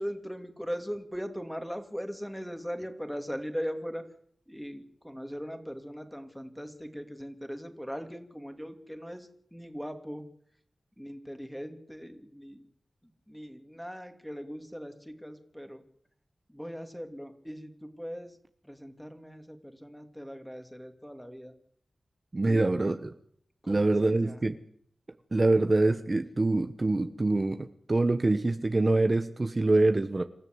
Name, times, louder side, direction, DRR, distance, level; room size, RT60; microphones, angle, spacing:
voice 1, 0.0-4.1 4.5-10.3 11.0-12.6 13.3-15.8 16.5-18.4 18.6-21.6 22.4-23.0 23.6-24.4, equal, 5° left, 6 dB, 2.8 m, -39 dB
voice 2, 22.3-23.1 23.7-24.6 25.3-30.2, right 2 dB, 40° right, 8 dB, 1.1 m, -25 dB
27.0 x 13.5 x 8.1 m, 0.64 s
wide cardioid pair, 70°, 0 cm